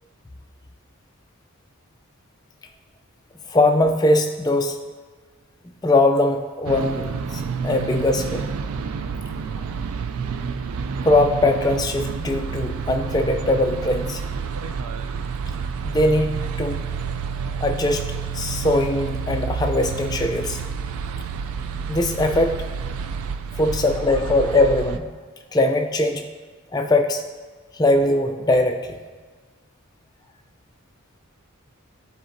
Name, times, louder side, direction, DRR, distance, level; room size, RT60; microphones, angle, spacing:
voice 1, 3.5-4.8 5.8-8.5 11.0-14.2 15.8-16.8 17.6-18.1 18.3-20.6 21.9-22.6 23.6-25.1 25.5-26.3 26.7-27.2 27.7-29.0, left 2 dB, 15° left, 4 dB, 0.4 m, -21 dB
sound 1, 6.6-25.0, right 5 dB, 75° right, 0.3 m, -29 dB
10.5 x 4.2 x 2.6 m, 1.4 s
head